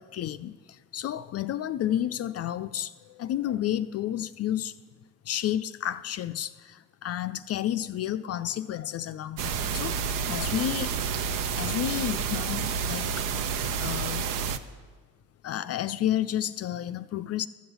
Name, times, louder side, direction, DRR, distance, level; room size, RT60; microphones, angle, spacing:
voice 1, 0.0-4.7 5.3-10.9 11.6-13.3 13.8-14.3 15.4-17.5, left 11 dB, 45° left, 12 dB, 0.4 m, -31 dB
sound 1, 9.4-14.6, right 6 dB, 70° right, 0.7 m, -29 dB
13.0 x 6.1 x 8.0 m, 1.5 s
hypercardioid pair, 65°, 34 cm